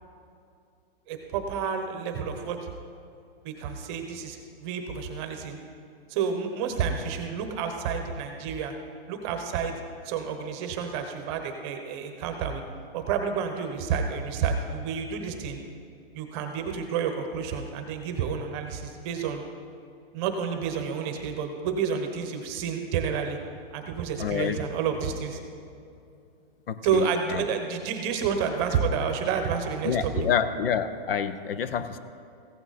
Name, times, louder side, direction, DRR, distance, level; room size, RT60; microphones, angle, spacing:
voice 1, 1.1-2.6 3.4-5.6 6.1-8.7 9.1-9.7 10.0-12.6 12.9-15.6 16.1-19.4 20.1-23.4 23.7-25.4 26.8-30.1, right 6 dB, 25° right, 5 dB, 1.0 m, -30 dB
voice 2, 24.2-24.6 26.7-27.5 29.8-32.0, left 8 dB, 65° left, 12 dB, 0.8 m, -28 dB
15.0 x 8.9 x 4.2 m, 2.5 s
hypercardioid pair, 155°, 31 cm